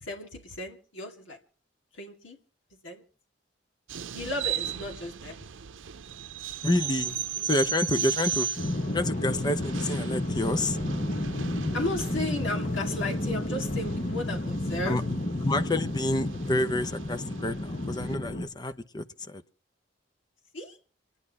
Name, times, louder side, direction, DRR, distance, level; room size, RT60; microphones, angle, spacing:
voice 1, 0.0-1.4 1.9-2.4 2.8-3.0 4.1-5.4 7.4-7.5 11.7-15.0 20.5-20.8, left 2 dB, 80° left, 2.4 m, -34 dB
sound 1, 3.9-18.0, right 9 dB, 90° right, 0.6 m, -36 dB
voice 2, 6.6-7.1 7.4-8.5 8.9-10.8 14.9-15.0 15.4-17.5 17.9-19.0 19.3-19.4, left 1 dB, 20° left, 0.7 m, -28 dB
sound 2, 8.6-18.5, left 1 dB, 40° left, 1.1 m, -31 dB
28.5 x 9.9 x 4.2 m
head